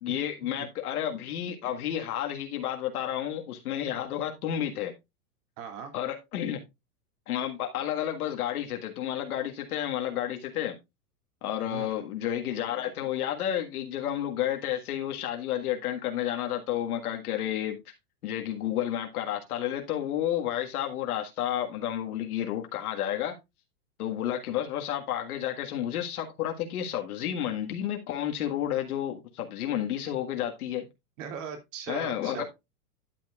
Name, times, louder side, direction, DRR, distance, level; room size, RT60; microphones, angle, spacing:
voice 1, 0.0-4.9 5.9-6.6 7.3-10.8 11.4-17.8 18.2-23.3 24.0-30.8 31.9-32.4, left 11 dB, 70° left, 1.8 m, -31 dB
voice 2, 5.6-5.9 11.7-12.1 31.2-32.4, right 7 dB, 55° right, 2.7 m, -39 dB
11.5 x 7.3 x 2.4 m
hypercardioid pair, 145°, 46 cm